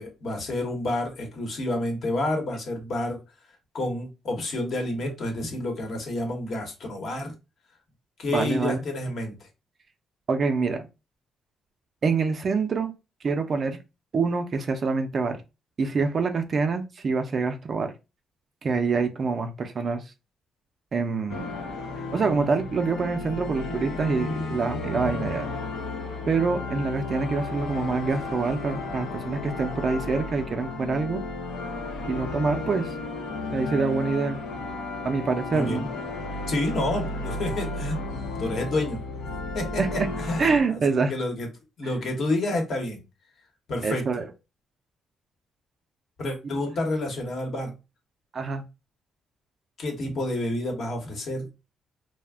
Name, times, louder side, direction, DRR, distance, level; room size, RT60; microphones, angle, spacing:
voice 1, 0.0-3.2 3.7-7.3 8.2-9.4 35.5-35.9 36.5-38.0 38.4-40.4 40.7-41.5 41.8-43.0 43.7-44.1 46.2-47.7 49.8-51.5, left 1 dB, 60° left, 0.9 m, -29 dB
voice 2, 8.3-8.8 10.3-10.9 12.0-12.9 13.2-13.8 14.1-15.4 15.8-17.9 18.6-20.0 20.9-21.5 22.1-25.5 26.3-31.2 32.1-32.9 33.5-34.4 35.0-35.9 39.8-40.1 40.4-41.1 43.8-44.3 48.3-48.6, right 4 dB, 45° right, 0.4 m, -26 dB
sound 1, 21.3-40.6, left 3 dB, 80° left, 0.7 m, -33 dB
2.4 x 2.1 x 3.4 m
cardioid pair, 90°, 0 cm